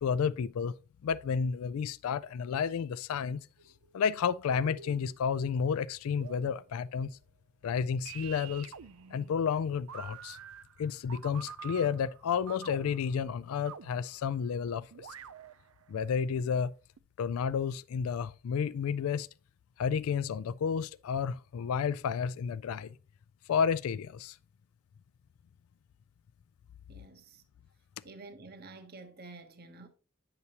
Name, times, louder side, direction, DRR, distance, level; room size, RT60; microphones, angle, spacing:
voice 1, 0.0-0.7 1.0-3.4 3.9-7.1 7.6-8.7 9.1-10.4 10.8-15.1 15.9-16.7 17.2-19.3 19.8-23.0 23.5-24.4, left 6 dB, 85° left, 0.3 m, -31 dB
sound 1, 3.6-4.2 4.6-5.6 6.1-6.9 8.1-14.5 14.9-15.9 17.0-17.1, right 8 dB, 80° right, 0.5 m, -48 dB
voice 2, 26.9-27.4 28.0-29.9, right 3 dB, 45° right, 0.9 m, -49 dB
9.5 x 6.8 x 2.8 m
head